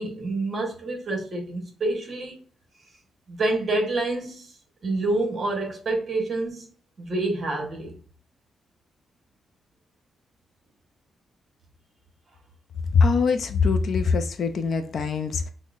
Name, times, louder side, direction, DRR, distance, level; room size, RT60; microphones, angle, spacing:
voice 1, 0.0-2.4 3.3-4.5 4.8-6.7 7.0-8.0, right 2 dB, 35° right, 1.0 m, -27 dB
voice 2, 12.9-15.5, left 5 dB, 50° left, 0.3 m, -22 dB
5.4 x 2.0 x 2.4 m
wide cardioid pair, 170°, 0 cm